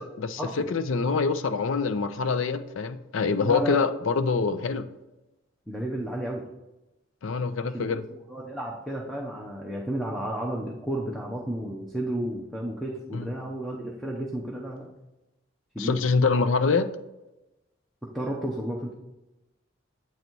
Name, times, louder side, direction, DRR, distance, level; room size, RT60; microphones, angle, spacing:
voice 1, 0.7-4.9 7.2-8.0 13.1-13.3 15.8-16.9, left 4 dB, 70° left, 0.5 m, -25 dB
voice 2, 3.4-3.8 5.7-6.4 7.7-8.0 8.3-14.9 15.7-16.0 18.1-18.9, right 1 dB, ahead, 0.7 m, -32 dB
7.9 x 4.0 x 4.5 m
head